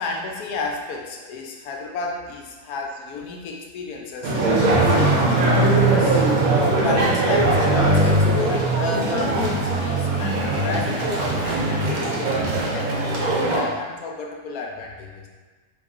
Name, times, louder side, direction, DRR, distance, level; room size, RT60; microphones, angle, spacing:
voice 1, 0.0-4.4 4.9-6.2 6.8-13.0 13.4-15.3, left 3 dB, 85° left, 0 dB, 1.1 m, -31 dB
sound 1, 4.2-13.6, right 2 dB, 70° right, 1.3 m, -20 dB
3.9 x 3.1 x 3.6 m, 1.3 s
omnidirectional pair, 1.6 m